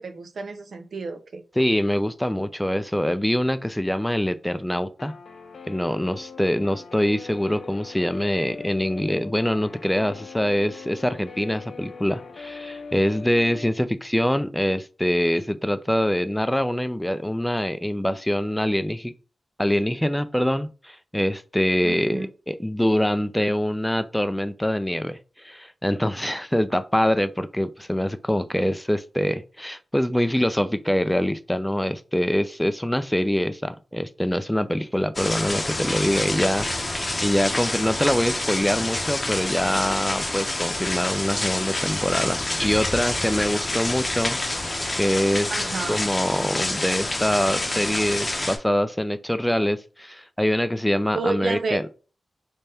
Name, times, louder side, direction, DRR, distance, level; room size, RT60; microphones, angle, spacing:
voice 1, 0.0-1.4 21.8-22.3 45.5-46.0 51.1-51.8, right 3 dB, 70° right, 0.5 m, -30 dB
voice 2, 1.6-5.1 5.7-19.1 19.6-36.7 37.2-44.4 45.0-45.5 45.9-51.8, equal, 5° left, 0.3 m, -24 dB
Guitar, 5.0-13.7, left 4 dB, 75° left, 0.5 m, -41 dB
sound 1, 35.1-48.6, left 2 dB, 30° left, 0.7 m, -27 dB
3.3 x 3.3 x 2.8 m
cardioid pair, 65°, 0 cm